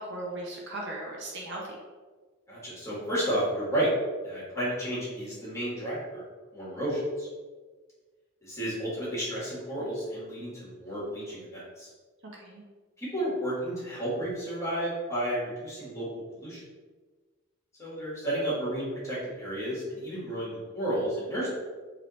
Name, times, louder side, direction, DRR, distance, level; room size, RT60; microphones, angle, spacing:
voice 1, 0.0-1.8 12.3-12.6, right 1 dB, 50° right, -2 dB, 0.7 m, -37 dB
voice 2, 2.5-3.9 4.2-6.2 6.5-7.3 8.4-11.9 13.0-16.1 16.4-16.6 17.8-21.5, right 1 dB, 15° left, -8 dB, 1.5 m, -32 dB
3.4 x 2.9 x 3.9 m, 1.4 s
head